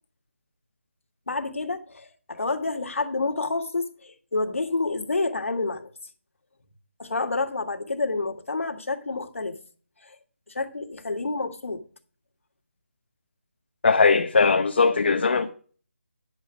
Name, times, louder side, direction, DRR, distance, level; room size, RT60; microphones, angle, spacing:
voice 1, 1.3-5.9 7.0-9.6 10.0-10.2 10.5-11.8, left 3 dB, 70° left, 1.8 m, -29 dB
voice 2, 13.8-15.5, left 4 dB, 50° left, 0.9 m, -20 dB
10.5 x 7.9 x 4.9 m
figure-of-eight pair, 170°, 7 cm